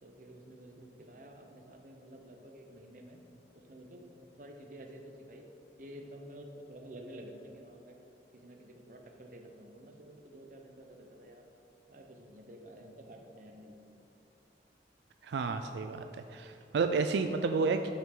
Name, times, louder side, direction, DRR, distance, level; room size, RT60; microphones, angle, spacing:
voice 1, 0.0-3.2 3.5-5.4 5.8-7.9 8.3-11.4 11.9-13.8, right 1 dB, 45° right, 3 dB, 0.9 m, -50 dB
voice 2, 15.2-16.0 16.3-17.9, right 4 dB, 80° right, 7 dB, 0.4 m, -30 dB
12.0 x 5.8 x 3.8 m, 3.0 s
head